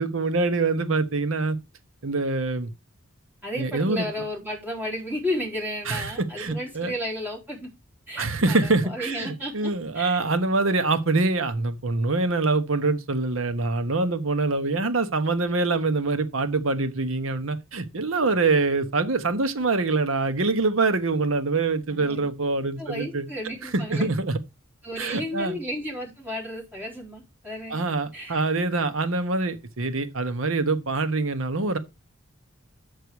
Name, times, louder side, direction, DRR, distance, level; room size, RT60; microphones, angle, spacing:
voice 1, 0.0-1.6 2.0-2.7 3.6-4.1 5.8-6.1 6.4-6.9 8.2-23.3 23.6-24.4 25.0-25.6 27.7-31.8, right 3 dB, 70° right, 1.0 m, -25 dB
voice 2, 3.4-7.7 8.1-10.2 21.9-22.3 22.8-24.1 24.8-27.8 28.1-28.4, left 1 dB, 10° right, 3.8 m, -33 dB
8.1 x 6.6 x 4.6 m
head